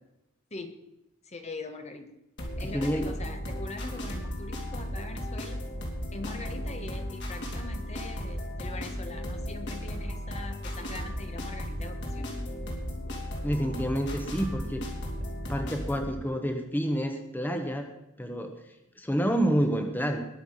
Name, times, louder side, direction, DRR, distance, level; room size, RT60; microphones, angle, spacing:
voice 1, 1.2-2.1 2.6-5.6 6.1-12.3, left 2 dB, 30° left, 6 dB, 1.4 m, -42 dB
sound 1, 2.4-16.1, equal, 55° left, 3.7 m, -35 dB
voice 2, 2.6-3.1 13.4-14.9 15.5-17.9 18.2-18.5 19.0-20.3, equal, 10° left, 5 dB, 1.3 m, -28 dB
21.0 x 7.1 x 5.7 m, 0.88 s
head